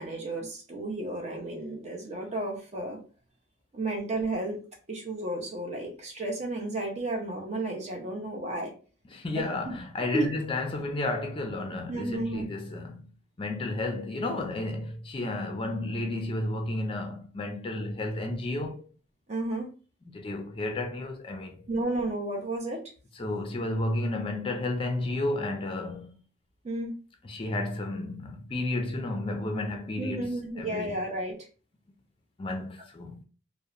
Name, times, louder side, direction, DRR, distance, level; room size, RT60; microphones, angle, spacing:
voice 1, 0.0-3.0 3.7-8.7 9.3-9.7 10.1-10.3 11.9-12.4 19.3-19.7 21.7-22.8 26.6-26.9 30.0-31.5, right 2 dB, 35° right, 0.5 m, -32 dB
voice 2, 9.1-13.1 13.4-18.9 20.1-21.7 23.2-26.2 27.2-30.2 30.6-30.9 32.4-33.2, left 2 dB, 30° left, 0.4 m, -32 dB
2.8 x 2.0 x 2.4 m
head